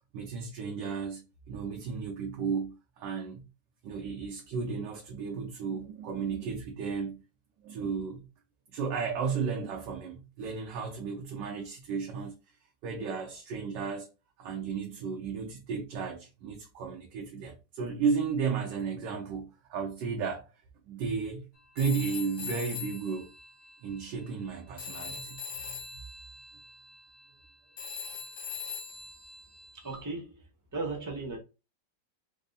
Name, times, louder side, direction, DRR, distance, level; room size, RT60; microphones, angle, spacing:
voice 1, 0.0-3.4 3.8-7.2 7.6-8.2 8.7-12.4 12.8-14.1 14.4-20.5 20.9-21.5 21.7-23.3 23.8-25.4 25.7-25.8, right 5 dB, 80° right, 1.3 m, -34 dB
Telephone, 21.8-24.5 24.8-30.0, left 6 dB, 55° left, 1.1 m, -42 dB
voice 2, 29.8-30.4 30.7-31.4, right 3 dB, 15° right, 0.6 m, -35 dB
3.5 x 2.1 x 3.9 m
omnidirectional pair, 1.9 m